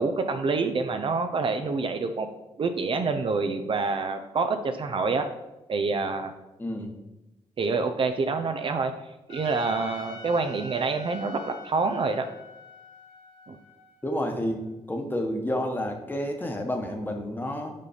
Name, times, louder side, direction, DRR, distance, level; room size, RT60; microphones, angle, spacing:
voice 1, 0.0-2.3 2.6-5.3 5.7-6.3 7.6-9.0 9.3-12.3 13.5-13.6, right 4 dB, 50° right, 7 dB, 0.5 m, -27 dB
voice 2, 6.6-6.9 14.0-14.6 14.9-17.7, left 1 dB, 15° left, 3 dB, 1.1 m, -30 dB
Trumpet, 9.3-14.5, left 4 dB, 80° left, 2.0 m, -46 dB
5.3 x 4.0 x 5.0 m, 0.97 s
cardioid pair, 75°, 11 cm